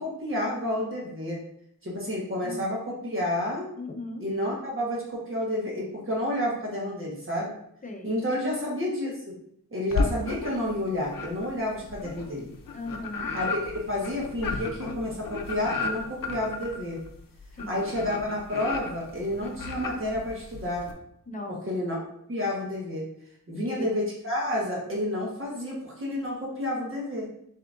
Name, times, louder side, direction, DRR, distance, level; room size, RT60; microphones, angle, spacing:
voice 1, 0.0-1.4 1.8-3.6 4.2-7.5 8.0-9.3 9.7-12.5 13.3-17.0 17.7-20.8 21.7-22.0 22.3-23.1 23.5-27.3, left 1 dB, 40° right, -4 dB, 1.2 m, -30 dB
voice 2, 3.8-4.3 7.8-8.2 10.0-10.1 12.7-13.3 17.5-17.8 19.4-19.6 21.3-21.7 23.5-24.0, left 2 dB, 25° left, 2 dB, 0.7 m, -38 dB
sound 1, 9.9-10.7 11.1-20.9, left 4 dB, 80° left, 0.6 m, -33 dB
7.0 x 2.9 x 2.5 m, 0.72 s
wide cardioid pair, 120°, 33 cm